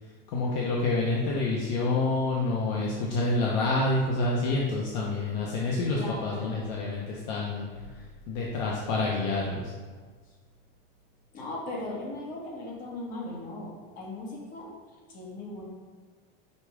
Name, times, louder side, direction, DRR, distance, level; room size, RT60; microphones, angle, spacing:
voice 1, 0.3-7.7 8.3-9.7, left 2 dB, 50° left, -3 dB, 0.9 m, -28 dB
voice 2, 5.9-6.6 11.3-14.7 15.1-15.7, left 2 dB, 30° left, -4 dB, 1.6 m, -38 dB
5.4 x 4.9 x 4.9 m, 1.4 s
supercardioid pair, 175°, 30 cm